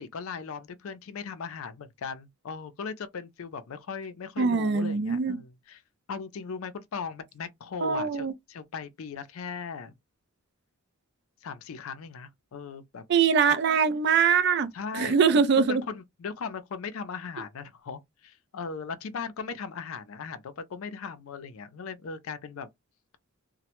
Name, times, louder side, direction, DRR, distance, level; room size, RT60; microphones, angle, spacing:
voice 1, 0.0-5.8 6.1-9.9 11.4-13.0 13.4-13.6 14.7-15.2 15.7-22.7, left 5 dB, 70° left, 0.4 m, -38 dB
voice 2, 4.4-5.4 7.8-8.3 13.1-15.8, right 6 dB, 50° right, 0.3 m, -23 dB
2.1 x 2.0 x 2.9 m
head